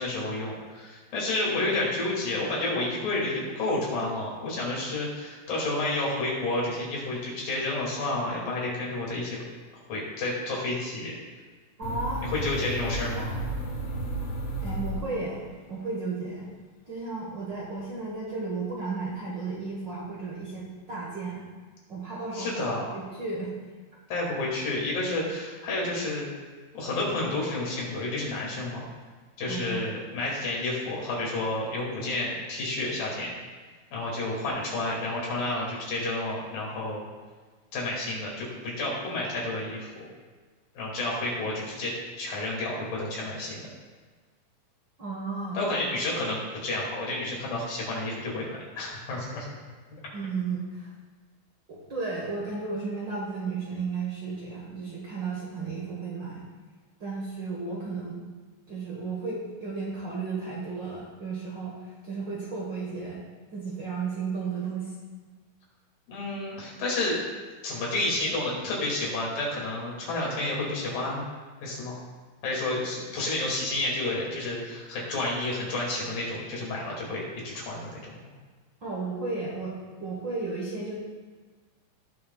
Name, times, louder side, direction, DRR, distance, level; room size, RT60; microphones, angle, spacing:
voice 1, 0.0-9.4 9.9-11.1 12.2-13.4 22.3-23.0 24.1-26.3 26.7-28.8 29.4-33.3 33.9-37.0 37.7-39.9 40.8-41.9 42.2-43.7 45.5-49.6 66.1-67.2 67.6-71.3 71.6-72.0 72.4-78.1, left 2 dB, 90° left, -4 dB, 4.1 m, -30 dB
sound 1, 11.8-15.6, right 1 dB, 60° left, 2.1 m, -33 dB
voice 2, 11.8-12.2 14.6-15.4 15.7-16.5 16.9-21.4 21.9-23.5 29.4-29.8 45.0-45.7 50.1-50.9 51.7-56.4 57.0-58.2 58.7-63.2 63.5-64.9 78.8-79.7 80.0-81.0, right 4 dB, 50° right, -5 dB, 1.4 m, -34 dB
18.0 x 6.3 x 2.3 m, 1.4 s
omnidirectional pair, 3.9 m